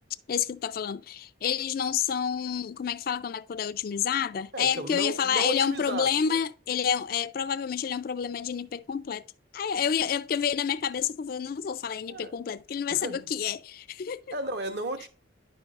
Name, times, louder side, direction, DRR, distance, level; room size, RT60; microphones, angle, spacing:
voice 1, 0.3-9.2 9.5-14.2, left 8 dB, 45° left, 0.3 m, -29 dB
voice 2, 4.5-6.4 12.1-12.3 12.9-13.3 14.3-15.1, right 1 dB, 55° right, 0.9 m, -34 dB
10.5 x 5.8 x 2.5 m
head